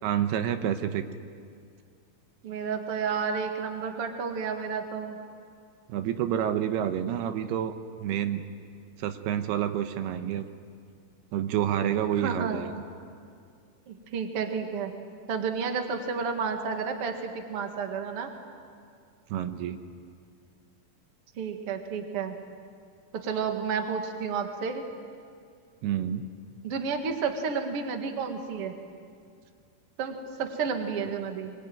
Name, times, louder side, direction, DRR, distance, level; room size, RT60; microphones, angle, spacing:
voice 1, 0.0-1.0 5.9-8.4 9.0-10.5 11.3-12.8 19.3-19.8 25.8-26.3, right 10 dB, 85° right, 8 dB, 3.0 m, -28 dB
voice 2, 2.4-5.2 12.2-12.7 13.9-14.9 15.3-18.3 21.4-22.4 23.1-24.8 26.6-28.8 30.0-31.5, right 5 dB, 45° right, 5 dB, 2.2 m, -31 dB
24.0 x 23.0 x 9.3 m, 2.3 s
omnidirectional pair, 4.5 m